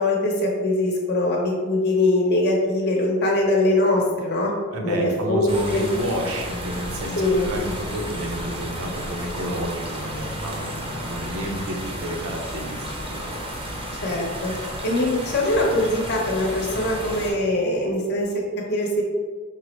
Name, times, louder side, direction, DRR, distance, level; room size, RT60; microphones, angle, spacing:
voice 1, 0.0-4.5 4.8-5.8 7.2-7.5 14.0-14.5 14.8-18.4 18.7-19.0, left 1 dB, 50° left, -2 dB, 0.8 m, -22 dB
voice 2, 4.7-13.3, equal, 80° right, 1 dB, 0.7 m, -30 dB
sound 1, 5.5-17.3, equal, 25° right, 0.6 m, -33 dB
4.7 x 2.0 x 4.3 m, 1.5 s
head